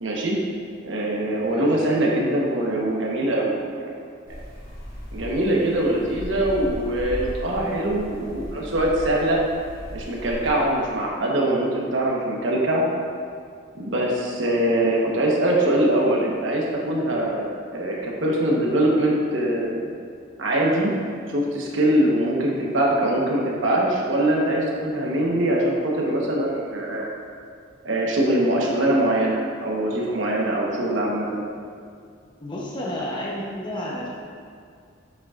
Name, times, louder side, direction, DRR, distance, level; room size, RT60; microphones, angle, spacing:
voice 1, 0.0-0.4 0.8-3.9 4.3-4.4 5.1-9.4 9.9-12.8 13.7-19.9 20.4-20.9 21.3-27.1 27.8-31.4, right 1 dB, 80° right, -3 dB, 1.2 m, -23 dB
voice 2, 1.4-1.9 32.4-34.1, left 1 dB, 25° left, -4 dB, 0.8 m, -31 dB
sound 1, 4.3-11.1, equal, 45° left, 1.5 m, -37 dB
7.5 x 6.8 x 2.5 m, 2.2 s
head